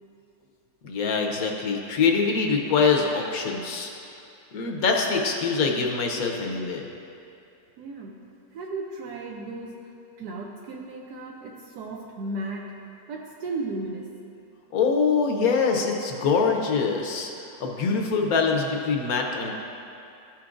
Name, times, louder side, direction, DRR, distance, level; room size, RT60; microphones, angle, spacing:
voice 1, 0.8-3.9 4.5-6.9 14.7-17.3 17.6-19.5, left 5 dB, 65° left, 1 dB, 1.1 m, -24 dB
voice 2, 7.8-8.2 8.5-9.9 10.2-14.2, right 2 dB, 75° right, -1 dB, 1.1 m, -35 dB
13.5 x 5.9 x 2.5 m, 2.7 s
omnidirectional pair, 1.8 m